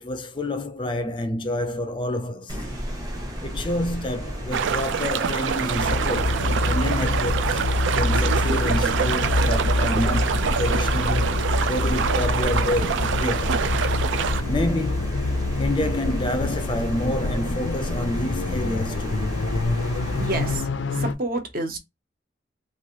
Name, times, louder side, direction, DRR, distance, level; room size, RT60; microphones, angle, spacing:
voice 1, 0.0-2.6 3.4-7.6 7.9-11.4 11.7-13.6 14.5-15.2 15.6-19.3, left 1 dB, 25° left, 0.4 m, -28 dB
sound 1, 2.5-20.6, equal, 20° right, 0.8 m, -33 dB
sound 2, 4.5-14.4, right 7 dB, 85° right, 0.4 m, -26 dB
sound 3, 5.8-21.1, left 2 dB, 85° left, 0.5 m, -26 dB
voice 2, 19.8-20.7 20.9-21.8, right 2 dB, 50° right, 0.8 m, -29 dB
3.1 x 2.5 x 2.7 m
head